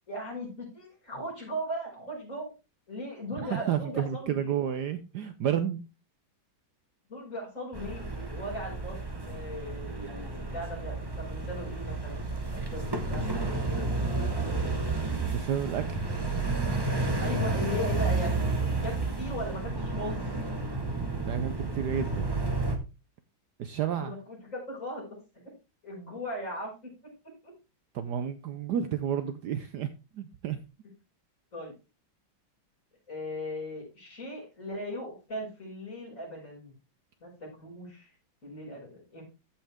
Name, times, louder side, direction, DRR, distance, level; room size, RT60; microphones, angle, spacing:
voice 1, 0.1-2.5 2.9-4.4 7.1-12.2 12.5-13.8 17.2-20.2 23.8-25.1 25.8-26.9 27.4-27.5 31.5-31.7 33.1-36.7 37.2-38.1 38.4-39.2, equal, 40° left, -4 dB, 6.1 m, -38 dB
voice 2, 3.4-5.8 15.2-16.0 21.2-22.3 23.6-24.1 27.9-29.9 30.1-30.6, right 9 dB, 65° right, 10 dB, 1.1 m, -31 dB
sound 1, 7.7-22.8, right 3 dB, 15° right, 1.0 m, -31 dB
14.5 x 5.8 x 3.5 m, 0.29 s
omnidirectional pair, 2.2 m